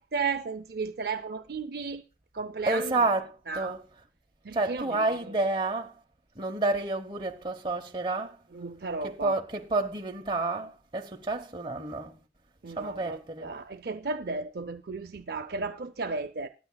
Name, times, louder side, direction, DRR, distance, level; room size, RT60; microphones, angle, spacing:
voice 1, 0.0-2.0 2.3-3.1 3.5-3.7 4.4-5.3 8.5-9.3 12.6-16.5, right 4 dB, 55° right, 0.5 m, -34 dB
voice 2, 2.7-3.8 4.5-5.9 6.4-8.4 9.0-12.2 12.8-13.5, right 2 dB, 25° right, 1.0 m, -29 dB
23.5 x 9.5 x 2.3 m
head